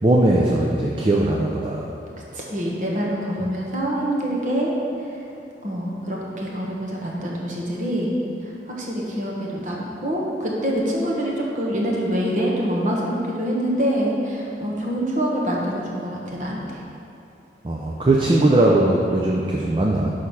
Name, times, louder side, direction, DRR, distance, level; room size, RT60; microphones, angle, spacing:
voice 1, 0.0-1.9 17.6-20.1, right 1 dB, 30° right, -1 dB, 0.5 m, -19 dB
voice 2, 2.3-4.7 5.6-8.2 8.8-16.8, equal, 45° right, -3 dB, 1.2 m, -25 dB
6.4 x 4.9 x 5.6 m, 2.7 s
head